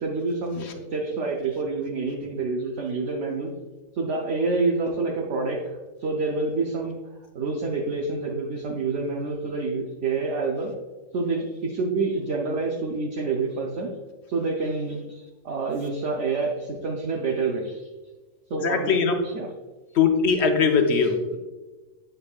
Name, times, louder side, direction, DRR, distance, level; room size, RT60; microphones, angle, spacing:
voice 1, 0.0-3.5 3.9-7.0 7.3-10.7 11.1-13.9 14.3-17.8 18.5-19.0 19.2-19.5, right 3 dB, 65° right, -1 dB, 1.0 m, -27 dB
voice 2, 18.5-19.1 19.9-21.2, left 5 dB, 60° left, 5 dB, 0.9 m, -21 dB
8.1 x 5.2 x 2.3 m, 1.2 s
omnidirectional pair, 1.4 m